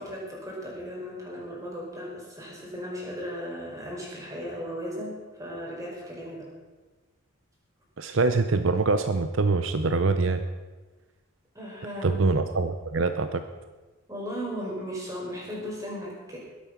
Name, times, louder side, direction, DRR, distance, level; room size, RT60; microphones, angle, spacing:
voice 1, 0.0-6.5 11.5-12.2 14.1-16.4, equal, 15° right, -3 dB, 4.6 m, -36 dB
voice 2, 8.0-10.4 12.0-13.4, right 3 dB, 65° right, 9 dB, 0.7 m, -24 dB
21.0 x 8.5 x 5.9 m, 1.3 s
head